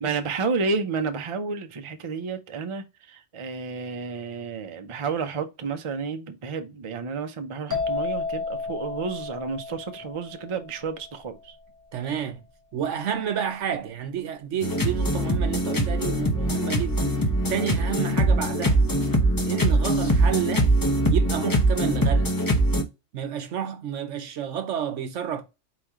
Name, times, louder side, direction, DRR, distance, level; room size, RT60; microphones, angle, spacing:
voice 1, 0.0-11.6, right 5 dB, 35° right, 0.5 m, -31 dB
sound 1, 7.7-11.3, left 4 dB, 15° right, 1.3 m, -32 dB
voice 2, 11.9-12.4 12.7-17.1 17.5-18.8 19.4-20.7 21.1-22.4 23.1-25.4, right 9 dB, 75° right, 1.1 m, -30 dB
sound 2, 14.6-22.8, right 1 dB, 20° left, 0.6 m, -22 dB
4.2 x 3.2 x 3.5 m
omnidirectional pair, 1.3 m